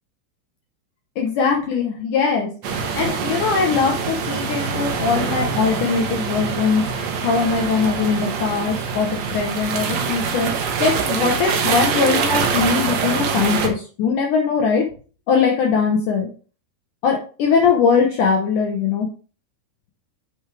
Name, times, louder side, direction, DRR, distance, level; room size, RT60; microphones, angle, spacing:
voice 1, 1.2-14.9 15.3-16.3 17.0-19.1, left 5 dB, 75° left, 1 dB, 1.8 m, -21 dB
sound 1, 2.6-13.7, right 6 dB, 85° right, 1.5 m, -24 dB
10.0 x 4.7 x 3.3 m, 0.38 s
omnidirectional pair, 4.8 m